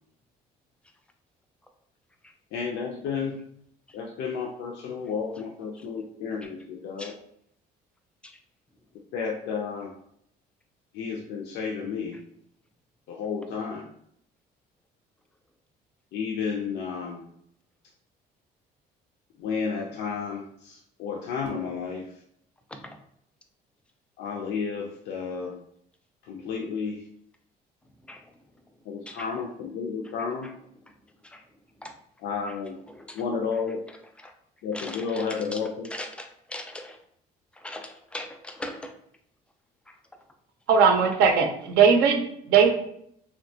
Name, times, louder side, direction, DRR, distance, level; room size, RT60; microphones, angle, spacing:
voice 1, 2.5-3.4 3.9-7.1 9.1-9.9 10.9-12.2 13.1-13.9 16.1-17.2 19.4-22.1 24.2-25.6 26.2-27.0 28.9-30.5 32.2-32.8 33.2-33.8 34.6-35.9, left 5 dB, 80° left, 0 dB, 0.4 m, -32 dB
voice 2, 28.0-29.4 30.0-30.5 31.2-31.5 31.8-31.9 32.4-32.6 32.9-33.2 33.5-33.6 33.9-34.3 34.7-37.0 37.5-38.9 39.9-40.2, left 1 dB, 5° left, 5 dB, 0.3 m, -42 dB
voice 3, 40.7-42.7, right 6 dB, 85° right, 4 dB, 0.5 m, -19 dB
2.8 x 2.1 x 2.6 m, 0.71 s
cardioid pair, 110°, 17 cm